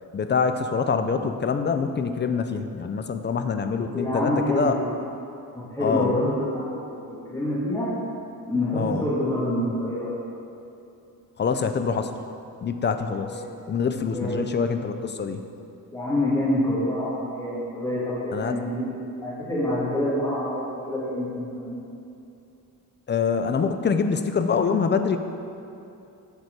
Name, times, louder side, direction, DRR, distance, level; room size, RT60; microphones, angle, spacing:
voice 1, 0.1-4.7 5.8-6.1 8.7-9.0 11.4-12.1 12.6-13.4 13.7-15.4 18.3-18.5 23.1-25.2, left 5 dB, 30° left, 8 dB, 0.4 m, -25 dB
voice 2, 3.8-4.8 5.5-7.9 8.4-10.2 13.2-13.5 14.0-14.4 15.9-18.9 19.2-21.8, left 1 dB, 10° left, -11 dB, 1.7 m, -27 dB
8.0 x 4.2 x 6.5 m, 2.7 s
cardioid pair, 120°, 35 cm